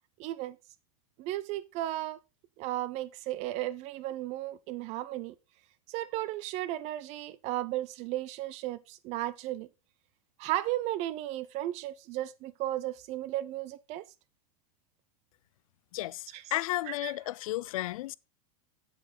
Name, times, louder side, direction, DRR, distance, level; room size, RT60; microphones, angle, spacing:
voice 1, 0.2-0.6 1.2-2.2 2.6-5.3 5.9-9.7 10.4-14.1 16.3-16.4 16.8-17.1, right 15 dB, 40° right, 0.7 m, -35 dB
voice 2, 15.9-18.1, left 17 dB, 75° left, 0.5 m, -33 dB
8.0 x 7.8 x 4.0 m
supercardioid pair, 150°, 18 cm